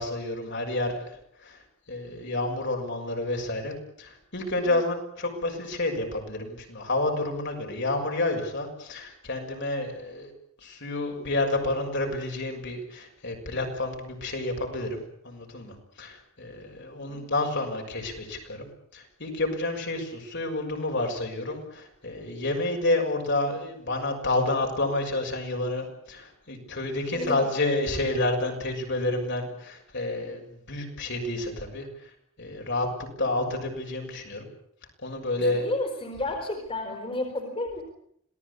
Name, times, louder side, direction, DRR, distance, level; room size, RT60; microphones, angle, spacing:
voice 1, 0.0-1.6 1.9-10.3 10.6-18.7 18.9-31.9 32.4-32.9 33.2-34.5 35.0-35.7, left 2 dB, 55° left, 2 dB, 6.5 m, -29 dB
voice 2, 27.1-27.4 35.4-37.8, left 2 dB, 25° left, 4 dB, 4.4 m, -31 dB
27.0 x 18.5 x 8.5 m, 0.69 s
head